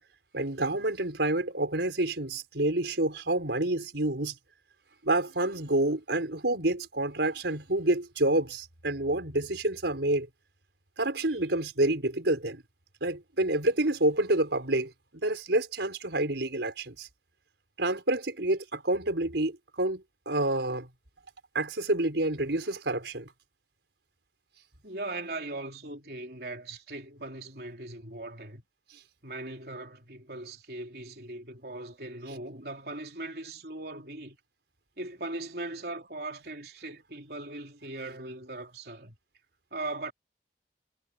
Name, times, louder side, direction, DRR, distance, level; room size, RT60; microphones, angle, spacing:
voice 1, 0.3-4.3 5.0-10.3 11.0-12.6 13.0-14.9 15.2-17.1 17.8-20.9 21.5-23.3, right 2 dB, 85° right, 4.7 m, -28 dB
voice 2, 24.8-28.6 29.2-34.4 35.0-39.1 39.7-40.1, right 2 dB, 60° right, 3.6 m, -39 dB
head